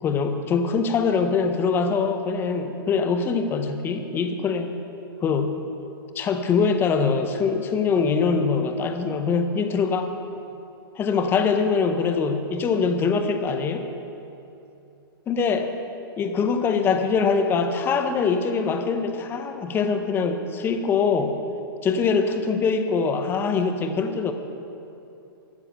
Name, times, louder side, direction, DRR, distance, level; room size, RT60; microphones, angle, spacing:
voice 1, 0.0-4.8 5.2-5.6 6.1-10.1 11.0-13.9 15.3-15.7 16.2-21.4 21.8-24.3, left 5 dB, 15° left, 7 dB, 0.8 m, -23 dB
13.0 x 7.3 x 6.6 m, 2.8 s
hypercardioid pair, 140°, 13 cm